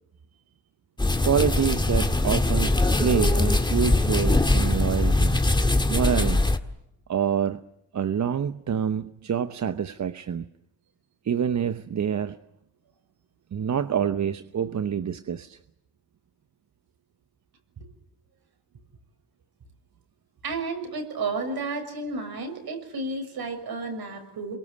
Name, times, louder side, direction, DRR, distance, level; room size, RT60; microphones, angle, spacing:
sound 1, 1.0-6.6, left 2 dB, 10° left, 1.7 m, -22 dB
voice 1, 1.2-5.4 5.9-6.4 7.1-7.6 7.9-10.5 11.2-12.4 13.5-15.6, right 8 dB, 45° right, 11 dB, 0.9 m, -26 dB
voice 2, 20.4-24.6, right 3 dB, 60° right, 6 dB, 6.5 m, -32 dB
27.0 x 23.5 x 8.3 m, 0.80 s
cardioid pair, 105°, 42 cm